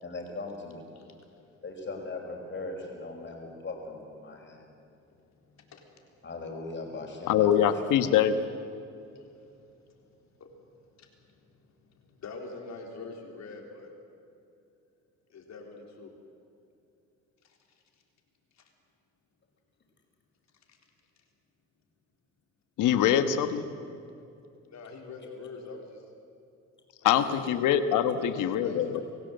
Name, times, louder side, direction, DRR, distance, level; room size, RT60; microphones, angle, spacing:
voice 1, 0.0-0.8 1.6-4.7 6.2-7.6 27.1-27.3, left 3 dB, 40° left, 1 dB, 5.4 m, -39 dB
voice 2, 7.3-8.3 22.8-23.6 27.0-29.0, left 10 dB, 85° left, 10 dB, 1.4 m, -24 dB
voice 3, 12.2-13.9 15.3-16.1 24.7-26.0 27.3-27.6 28.2-29.0, left 3 dB, 65° left, 2 dB, 4.0 m, -43 dB
25.5 x 16.5 x 8.0 m, 2.6 s
cardioid pair, 90°, 30 cm